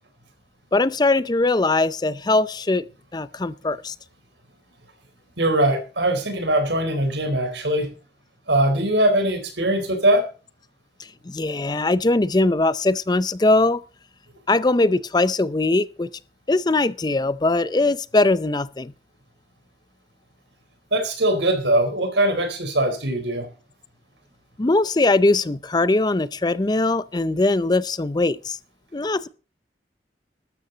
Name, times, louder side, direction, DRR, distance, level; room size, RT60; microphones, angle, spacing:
voice 1, 0.7-3.9 11.0-13.8 14.5-16.1 16.5-18.9 24.6-28.6 28.9-29.3, left 2 dB, 25° left, 0.5 m, -21 dB
voice 2, 5.4-7.9 8.5-10.2 20.9-23.5, right 1 dB, 90° right, 4.1 m, -21 dB
13.0 x 13.0 x 3.9 m
head